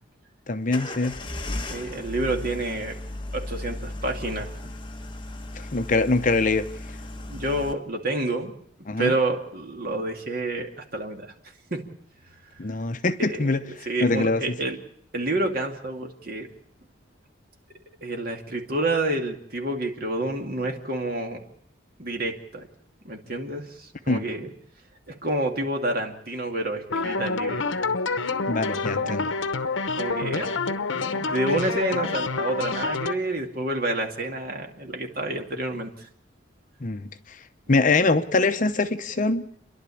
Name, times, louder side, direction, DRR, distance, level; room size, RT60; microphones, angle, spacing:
voice 1, 0.5-1.1 5.5-6.7 8.9-9.1 12.6-14.6 24.1-24.2 28.5-29.3 36.8-37.4 37.7-39.4, left 3 dB, 40° left, 0.8 m, -24 dB
sound 1, 0.7-7.7, left 1 dB, 25° left, 1.2 m, -36 dB
voice 2, 1.7-3.0 3.3-4.5 7.3-8.5 9.0-11.3 11.7-11.8 12.7-12.8 13.2-14.8 15.1-16.5 18.0-21.4 22.0-22.7 23.0-24.5 25.1-27.7 29.0-29.2 29.9-30.5 30.9-36.1, right 2 dB, 50° right, 2.4 m, -29 dB
sound 2, 26.9-33.1, left 4 dB, 75° left, 0.9 m, -27 dB
29.5 x 11.5 x 8.5 m
head